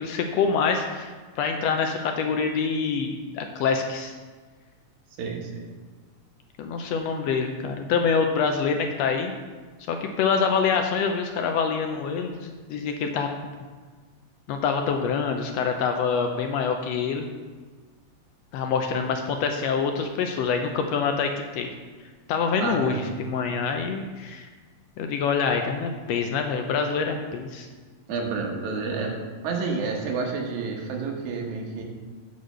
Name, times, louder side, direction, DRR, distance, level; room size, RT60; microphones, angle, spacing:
voice 1, 0.0-4.1 6.6-9.3 9.9-13.3 14.5-17.3 18.5-21.7 22.3-24.5 25.0-27.7, left 5 dB, 80° left, 4 dB, 1.6 m, -26 dB
voice 2, 5.2-5.7 22.6-23.0 28.1-29.1 29.4-31.8, right 4 dB, 85° right, 1 dB, 2.6 m, -29 dB
9.5 x 4.1 x 6.5 m, 1.4 s
omnidirectional pair, 3.3 m